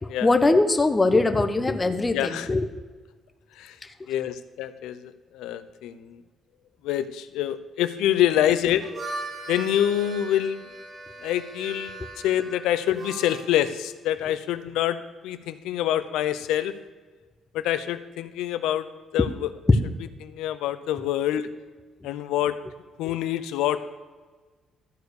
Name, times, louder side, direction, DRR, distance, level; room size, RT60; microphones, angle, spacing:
voice 1, 0.0-2.7 3.8-3.9, left 2 dB, 20° left, 7 dB, 0.9 m, -22 dB
voice 2, 2.1-2.5 3.6-3.8 4.1-6.2 6.8-8.9 9.5-10.6 11.2-16.7 17.5-18.9 19.1-19.5 20.2-21.5 22.0-22.6 23.0-23.8, left 11 dB, 85° left, 12 dB, 0.6 m, -26 dB
Harmonica, 8.7-13.6, right 2 dB, 45° right, 2.2 m, -39 dB
13.5 x 4.7 x 6.5 m, 1.4 s
cardioid pair, 80°, 0 cm